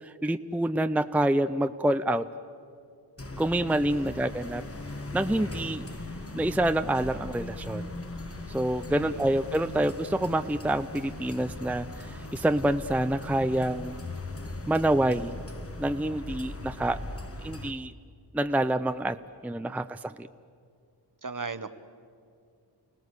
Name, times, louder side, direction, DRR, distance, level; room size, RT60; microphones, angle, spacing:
voice 1, 0.0-2.3 3.4-4.6 5.1-5.8 6.3-7.9 8.5-14.0 14.7-15.3 15.8-17.0 17.4-17.9 18.3-19.2 19.4-20.3, right 1 dB, 5° right, 10 dB, 0.6 m, -27 dB
sound 1, 3.2-17.7, left 2 dB, 35° left, 1.3 m, -39 dB
voice 2, 3.9-4.2 8.9-9.3 21.2-21.7, right 4 dB, 50° right, 11 dB, 1.2 m, -38 dB
sound 2, 5.0-15.3, left 1 dB, 80° left, 7.0 m, -48 dB
29.5 x 18.0 x 8.2 m, 2.3 s
wide cardioid pair, 50°, 42 cm